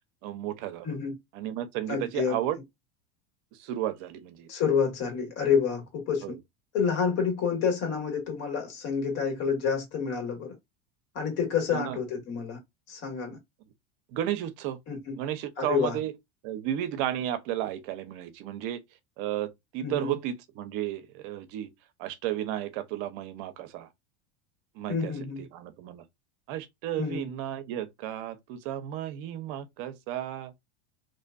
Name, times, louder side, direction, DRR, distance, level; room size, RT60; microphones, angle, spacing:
voice 1, 0.2-1.0 1.3-2.6 3.6-4.5 6.2-6.3 11.7-12.0 14.1-14.8 15.2-16.1 16.4-18.8 19.2-21.7 22.0-23.9 24.8-25.1 25.4-26.0 26.5-30.5, right 12 dB, 65° right, 0.6 m, -33 dB
voice 2, 0.8-1.1 1.9-2.4 4.5-6.3 6.7-10.5 11.1-12.6 12.9-13.4 14.9-15.2 15.6-16.0 19.8-20.1 24.9-25.4 27.0-27.2, left 6 dB, 55° left, 1.6 m, -28 dB
2.6 x 2.4 x 2.2 m
supercardioid pair, 110°, 30 cm